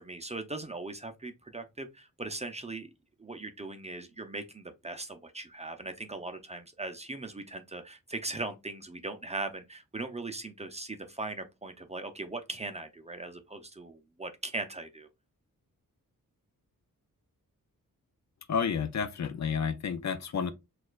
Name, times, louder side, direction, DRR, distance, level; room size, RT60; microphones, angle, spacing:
voice 1, 0.0-2.9 3.2-15.1, right 2 dB, 20° right, 0.5 m, -39 dB
voice 2, 18.5-20.5, left 6 dB, 55° left, 0.5 m, -30 dB
6.3 x 2.4 x 2.3 m
wide cardioid pair, 130°, 35 cm